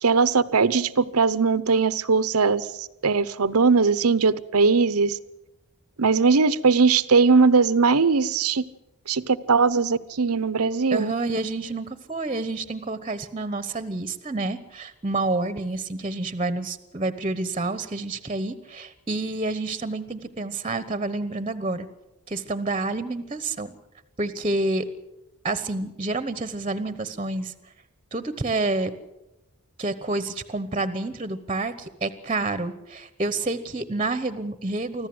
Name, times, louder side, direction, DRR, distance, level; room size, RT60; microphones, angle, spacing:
voice 1, 0.0-5.2 6.0-8.6 9.1-11.1, right 4 dB, 90° right, 16 dB, 0.9 m, -20 dB
voice 2, 10.9-21.9 22.3-23.8 24.2-24.9 25.4-27.5 28.1-28.9 29.8-35.1, right 2 dB, 25° right, 12 dB, 1.0 m, -28 dB
25.0 x 15.0 x 7.8 m, 0.93 s
head